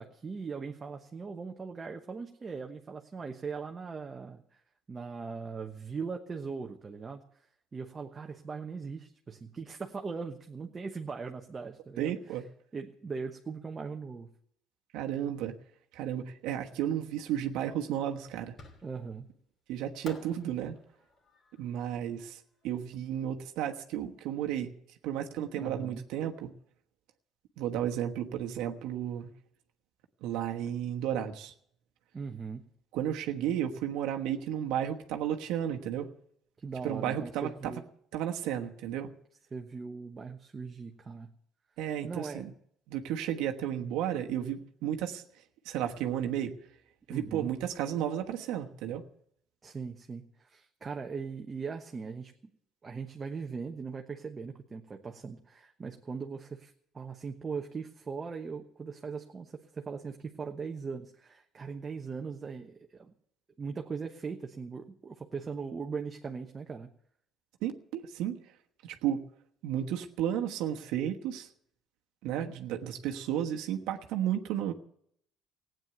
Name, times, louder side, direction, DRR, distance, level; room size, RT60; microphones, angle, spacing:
voice 1, 0.0-4.6 4.9-7.2 7.7-12.2 12.7-14.3 18.8-19.3 25.5-26.0 32.1-32.6 36.6-37.8 39.5-41.3 42.0-42.4 47.1-47.5 49.6-52.3 52.8-63.1 63.6-66.9, right 5 dB, 25° right, 3 dB, 1.1 m, -40 dB
voice 2, 12.0-12.4 14.9-15.5 15.9-18.5 19.7-20.8 21.6-24.7 25.0-26.5 27.6-29.3 30.2-31.5 32.9-36.1 36.8-37.7 38.1-39.1 41.8-42.5 42.9-45.2 45.6-46.5 47.1-49.0 67.6-68.4 68.8-69.2 69.6-71.5 72.2-74.7, right 10 dB, 80° right, 4 dB, 1.2 m, -33 dB
Fireworks, 18.6-19.2 20.0-23.2, left 4 dB, 45° left, 2.8 m, -52 dB
16.0 x 9.1 x 8.0 m, 0.69 s
cardioid pair, 120°, 0 cm